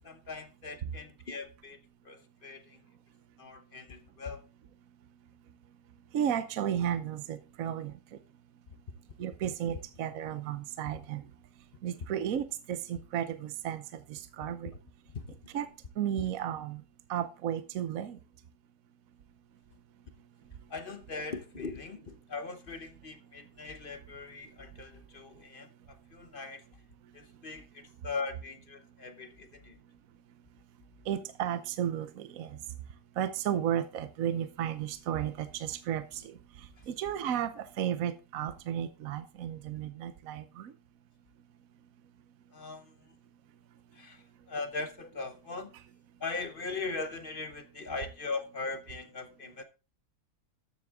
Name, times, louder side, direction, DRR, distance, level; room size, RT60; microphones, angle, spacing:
voice 1, 0.0-1.8 2.0-2.8 3.4-4.4 15.1-15.2 20.7-26.6 27.1-29.8 42.5-42.9 44.0-44.2 44.5-45.7 46.2-49.6, left 3 dB, 40° left, 0.9 m, -40 dB
voice 2, 6.1-7.9 9.2-11.2 11.8-13.8 14.1-14.7 15.5-15.7 16.0-16.8 17.1-18.2 31.1-32.5 33.2-36.0 36.9-40.7, right 10 dB, 65° right, 1.2 m, -33 dB
13.0 x 7.4 x 3.6 m
omnidirectional pair, 1.7 m